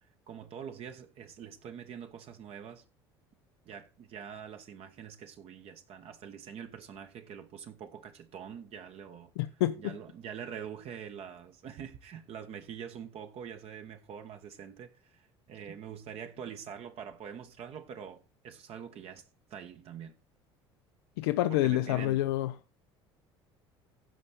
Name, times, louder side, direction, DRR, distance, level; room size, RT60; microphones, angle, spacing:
voice 1, 0.3-2.8 3.7-9.3 9.8-19.2 19.5-20.1 21.5-22.2, right 8 dB, 45° right, 1.1 m, -45 dB
voice 2, 9.4-10.0 21.2-22.5, left 15 dB, 65° left, 0.5 m, -28 dB
15.5 x 5.4 x 4.3 m
figure-of-eight pair, 65°, 14 cm